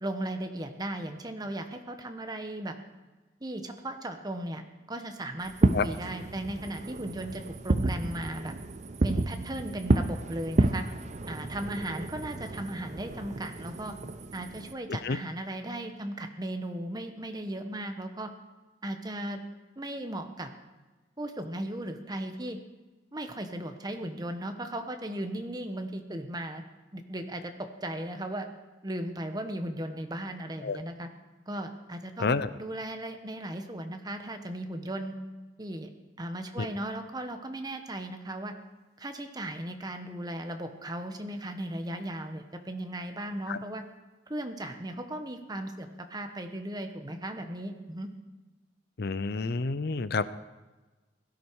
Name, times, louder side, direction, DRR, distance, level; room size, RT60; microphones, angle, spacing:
voice 1, 0.0-2.7 3.4-4.6 4.9-8.5 9.0-10.8 11.3-13.9 14.3-18.3 18.8-19.4 19.8-20.5 21.2-22.6 23.1-26.6 26.9-28.5 28.8-31.1 31.5-35.1 35.6-35.9 36.2-38.5 39.0-43.8 44.3-48.1, right 1 dB, 20° right, 6 dB, 1.1 m, -36 dB
Fireworks, 5.4-14.7, right 2 dB, 40° right, 0.6 m, -30 dB
voice 2, 32.2-32.5 36.6-36.7 43.5-43.6 49.0-50.3, left 4 dB, 60° left, 14 dB, 0.6 m, -28 dB
17.0 x 13.0 x 4.7 m, 1.2 s
head